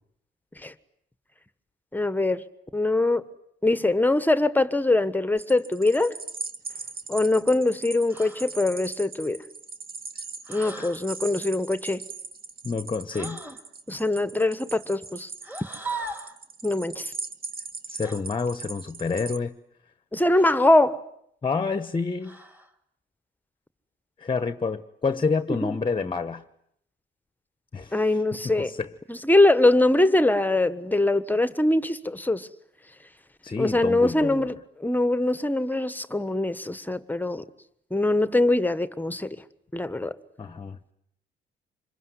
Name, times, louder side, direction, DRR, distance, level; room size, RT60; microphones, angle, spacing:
voice 1, 1.9-2.4 2.7-3.3 3.6-6.2 7.1-9.4 10.5-12.0 13.9-15.3 16.6-17.1 20.1-21.0 25.5-25.7 27.9-28.7 29.1-32.5 33.6-34.5 34.8-37.4 37.9-39.4 39.7-40.1, left 2 dB, 10° left, 1.3 m, -22 dB
sound 1, 5.4-19.4, right 4 dB, 50° right, 2.0 m, -39 dB
sound 2, 8.1-8.5 10.5-11.0 13.1-13.6 15.4-16.4 18.0-18.2 20.3-20.8 22.2-22.7, right 2 dB, 10° right, 2.9 m, -38 dB
voice 2, 12.6-13.4 17.9-19.5 21.4-22.4 24.2-26.4 27.7-28.9 33.4-34.5 40.4-40.8, left 4 dB, 25° left, 1.1 m, -29 dB
26.5 x 22.5 x 9.7 m
cardioid pair, 90°, 20 cm